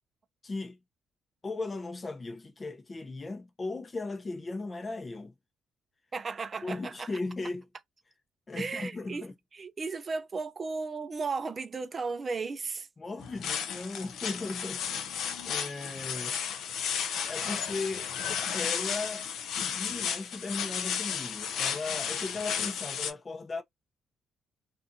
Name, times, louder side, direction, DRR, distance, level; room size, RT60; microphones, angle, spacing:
voice 1, 0.4-0.8 1.4-5.3 6.6-7.6 8.5-9.3 13.0-14.8 15.4-16.4 17.3-18.1 18.5-19.3 19.6-23.6, left 3 dB, 30° left, 0.6 m, -37 dB
voice 2, 6.1-7.1 8.6-9.2 9.5-12.9, right 4 dB, 40° right, 0.5 m, -35 dB
sound 1, 13.2-23.1, left 8 dB, 80° left, 0.5 m, -33 dB
2.6 x 2.5 x 2.6 m
cardioid pair, 90°, 0 cm